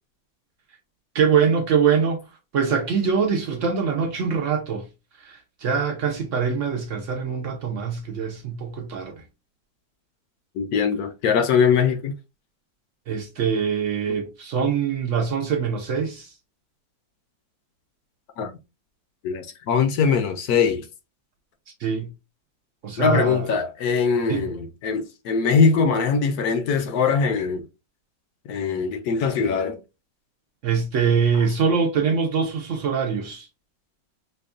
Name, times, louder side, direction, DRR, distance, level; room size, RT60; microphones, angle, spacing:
voice 1, 1.1-2.2 2.5-4.8 5.2-9.2 13.1-16.3 21.8-22.1 22.8-23.5 24.3-24.4 30.6-33.5, right 6 dB, 70° right, 0.7 m, -23 dB
voice 2, 10.6-12.1 18.4-18.5 19.2-20.9 23.0-27.6 28.5-29.8, left 5 dB, 65° left, 1.0 m, -21 dB
5.1 x 2.3 x 2.4 m
omnidirectional pair, 1.9 m